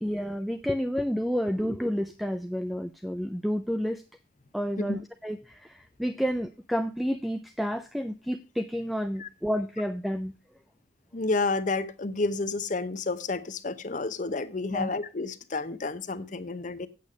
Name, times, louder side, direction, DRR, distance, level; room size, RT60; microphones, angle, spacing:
voice 1, 0.0-4.0 4.5-10.3 14.7-14.9, equal, ahead, 0.4 m, -30 dB
voice 2, 11.1-16.9, left 3 dB, 45° left, 0.8 m, -30 dB
8.5 x 8.2 x 4.8 m
head